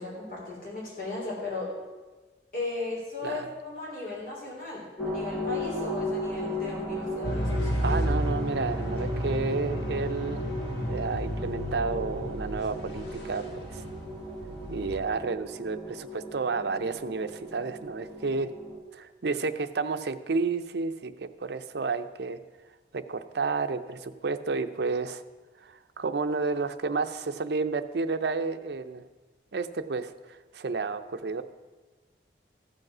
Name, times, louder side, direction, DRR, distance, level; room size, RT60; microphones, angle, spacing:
voice 1, 0.0-1.7 2.5-7.9, left 2 dB, 50° left, -4 dB, 3.2 m, -36 dB
voice 2, 3.2-3.5 7.8-10.4 10.8-13.8 14.7-18.5 18.9-22.4 22.9-25.2 25.6-29.0 29.5-31.4, right 4 dB, 75° right, 10 dB, 0.6 m, -31 dB
sound 1, 5.0-18.8, equal, 5° left, 1.2 m, -36 dB
sound 2, 7.2-15.1, equal, 85° left, 1.7 m, -32 dB
14.5 x 5.3 x 6.0 m, 1.3 s
head